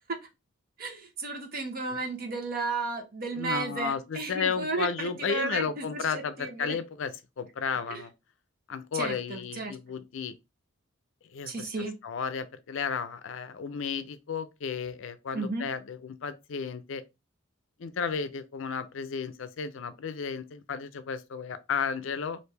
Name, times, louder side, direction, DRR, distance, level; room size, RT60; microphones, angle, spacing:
voice 1, 0.8-6.8 7.9-8.0 8.9-9.8 11.5-11.9 15.3-15.7, right 3 dB, 45° right, 0.8 m, -33 dB
voice 2, 3.4-8.1 8.7-10.3 11.3-11.7 12.0-17.0 17.8-22.4, left 6 dB, 70° left, 0.4 m, -33 dB
3.3 x 2.6 x 3.3 m
head